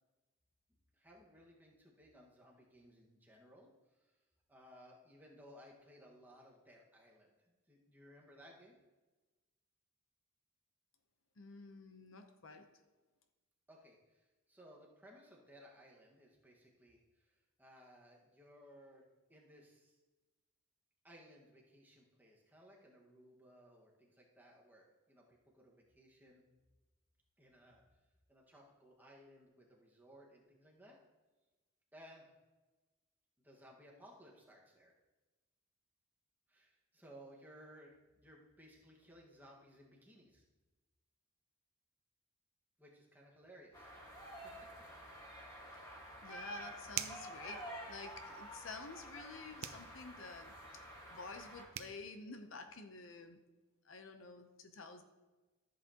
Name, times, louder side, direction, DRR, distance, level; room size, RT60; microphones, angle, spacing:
voice 1, 0.9-3.7 4.0-4.2 4.5-8.7 13.7-20.0 21.0-26.4 27.4-27.8 28.3-31.0 31.9-32.3 33.4-34.9 36.5-40.4 42.8-43.9 44.4-44.7, equal, 10° right, -3 dB, 1.5 m, -60 dB
voice 2, 11.4-12.7 46.2-53.4 53.8-55.0, left 4 dB, 65° left, 7 dB, 0.7 m, -51 dB
sound 1, 43.7-51.6, equal, 15° left, 1.6 m, -50 dB
sound 2, 46.9-47.3 49.6-49.9 51.4-51.5 51.7-52.0, right 10 dB, 80° right, 0.6 m, -41 dB
14.0 x 7.7 x 2.9 m, 1.2 s
head